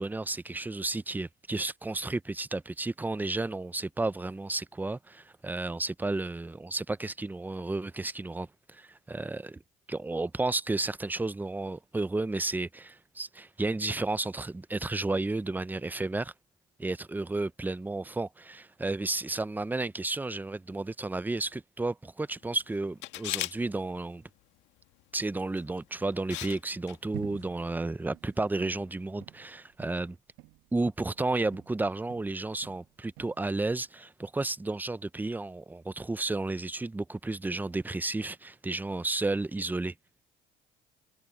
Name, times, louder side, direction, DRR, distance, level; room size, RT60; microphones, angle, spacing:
voice 1, 0.0-9.6 9.9-16.3 16.8-24.2 25.1-30.2 30.7-39.9, right 2 dB, 10° right, 0.6 m, -32 dB
Camera, 23.0-23.6 25.6-25.8 26.3-26.6 26.9-27.0, left 17 dB, 80° left, 1.8 m, -35 dB
sound 1, 27.1-31.8 32.1-33.4, right 20 dB, 85° right, 1.2 m, -49 dB
supercardioid pair, 85°, 19 cm